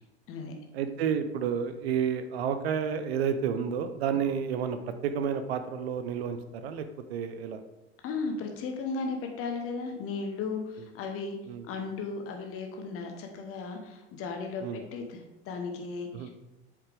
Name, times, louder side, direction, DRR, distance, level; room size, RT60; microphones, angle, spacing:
voice 1, 0.7-6.4 6.6-6.8 7.1-7.6 11.5-11.6 14.6-14.8 16.1-16.3, right 7 dB, 65° right, 9 dB, 0.7 m, -30 dB
voice 2, 8.0-11.4 11.6-16.3, left 4 dB, 40° left, 4 dB, 1.3 m, -35 dB
8.0 x 4.9 x 3.5 m, 0.97 s
figure-of-eight pair, 75°, 34 cm